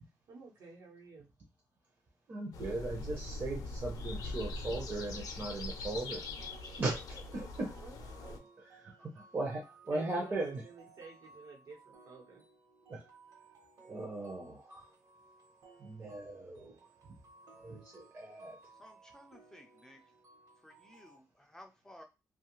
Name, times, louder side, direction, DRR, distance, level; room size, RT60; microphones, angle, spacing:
voice 1, 0.3-1.3 7.8-8.5 9.9-12.5, right 3 dB, 85° right, -1 dB, 1.0 m, -52 dB
voice 2, 2.3-6.2 6.8-7.7 8.7-10.6 12.9-13.1 13.8-14.9 15.8-17.1 17.6-18.6, right 2 dB, 35° right, 0 dB, 0.6 m, -38 dB
sound 1, 2.5-8.4, left 2 dB, 70° left, 0.5 m, -42 dB
sound 2, 6.4-21.2, right 3 dB, 65° right, 1.1 m, -60 dB
voice 3, 18.8-20.0 20.6-22.0, left 1 dB, 10° left, 3 dB, 0.3 m, -56 dB
2.5 x 2.3 x 3.0 m, 0.27 s
wide cardioid pair, 165°, 6 cm